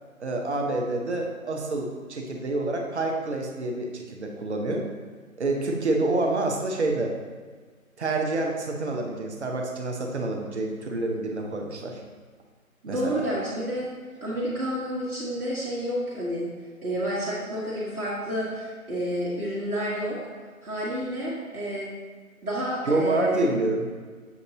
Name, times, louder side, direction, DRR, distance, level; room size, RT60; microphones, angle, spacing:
voice 1, 0.2-4.9 5.4-7.1 8.0-12.0 12.9-13.2 22.9-23.9, right 2 dB, 50° right, 1 dB, 0.7 m, -27 dB
voice 2, 12.8-13.9 14.2-16.5 16.8-20.2 20.6-21.9 22.4-23.5, equal, 85° right, -8 dB, 1.2 m, -29 dB
6.9 x 2.6 x 2.8 m, 1.5 s
figure-of-eight pair, 150°, 43 cm